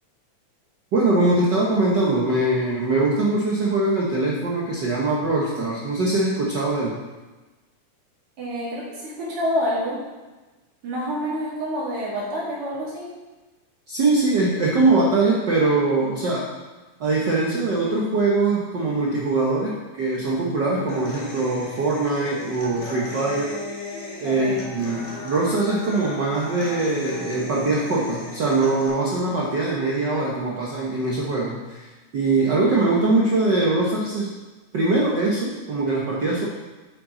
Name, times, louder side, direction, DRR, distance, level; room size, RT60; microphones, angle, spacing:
voice 1, 0.9-6.9 13.9-16.5 17.0-23.6 24.2-34.3 34.7-36.4, right 2 dB, 85° right, -4 dB, 0.9 m, -22 dB
voice 2, 8.4-10.0 10.8-13.1 24.2-24.7, equal, 45° right, -6 dB, 3.1 m, -28 dB
Human voice / Acoustic guitar, 20.9-28.9, left 2 dB, 60° left, 3.0 m, -36 dB
8.2 x 7.6 x 3.8 m, 1.2 s
omnidirectional pair, 3.5 m